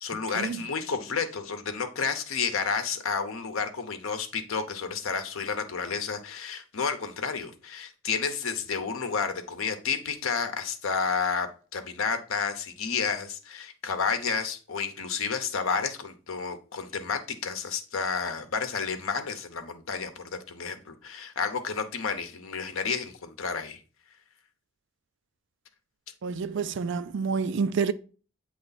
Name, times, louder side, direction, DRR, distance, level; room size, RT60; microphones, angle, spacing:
voice 1, 0.0-23.8, left 5 dB, 90° left, 0.8 m, -31 dB
voice 2, 26.2-27.9, right 5 dB, 60° right, 0.4 m, -28 dB
7.8 x 3.2 x 4.0 m
head